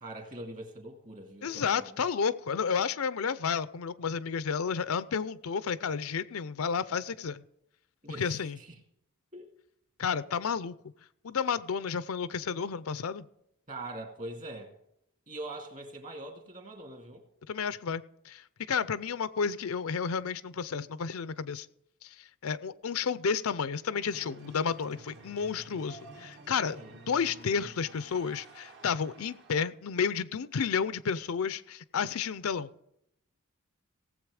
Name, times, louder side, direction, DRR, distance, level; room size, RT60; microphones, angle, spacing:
voice 1, 0.0-2.0 8.0-8.8 9.3-9.5 13.7-14.7 15.3-17.2 26.6-27.0, right 1 dB, 35° right, 2.3 m, -43 dB
voice 2, 1.4-7.4 8.1-8.6 10.0-10.7 11.2-13.3 17.5-21.7 22.0-26.8 27.1-32.7, left 6 dB, 70° left, 0.5 m, -31 dB
sound 1, 24.1-29.7, right 2 dB, 55° right, 1.7 m, -51 dB
17.5 x 7.6 x 4.9 m
head